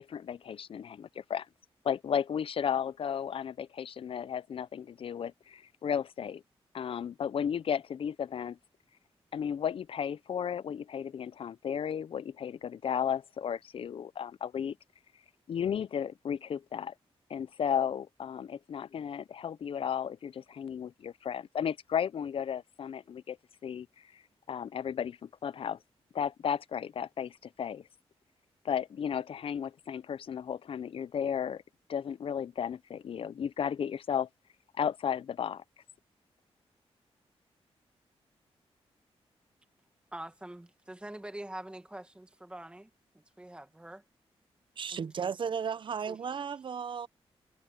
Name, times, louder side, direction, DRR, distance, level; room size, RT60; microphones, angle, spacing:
voice 1, 0.0-1.5 1.8-6.4 6.7-8.6 9.3-14.8 15.5-16.9 17.3-23.4 23.6-23.9 24.1-24.2 24.5-25.8 26.1-27.8 28.6-31.6 31.9-34.3 34.8-35.6, left 8 dB, 60° left, 0.5 m, -34 dB
voice 2, 40.1-44.0 44.9-45.0 46.1-46.2, right 1 dB, 10° right, 1.8 m, -45 dB
voice 3, 44.8-47.1, right 7 dB, 50° right, 0.7 m, -34 dB
wide cardioid pair, 115°, 11 cm